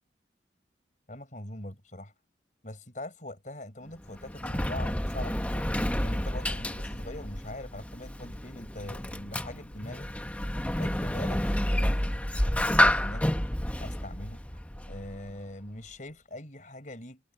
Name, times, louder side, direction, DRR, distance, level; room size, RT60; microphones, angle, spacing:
voice 1, 1.1-2.1 2.6-10.1 10.8-13.4 13.8-14.4 14.9-17.2, left 1 dB, 45° left, 5.2 m, -43 dB
Sliding door, 3.9-15.3, left 1 dB, 10° left, 0.9 m, -30 dB
head